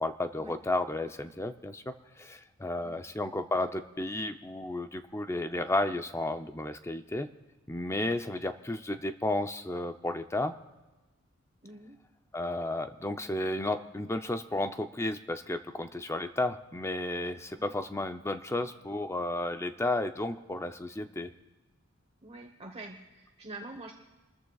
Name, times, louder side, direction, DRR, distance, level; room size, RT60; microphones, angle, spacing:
voice 1, 0.0-7.3 7.7-10.5 12.3-21.3, left 2 dB, 15° left, 8 dB, 0.6 m, -33 dB
voice 2, 11.6-12.0 17.6-17.7 22.2-23.9, right 2 dB, 30° right, 2 dB, 1.0 m, -45 dB
29.5 x 13.5 x 2.4 m, 1.2 s
head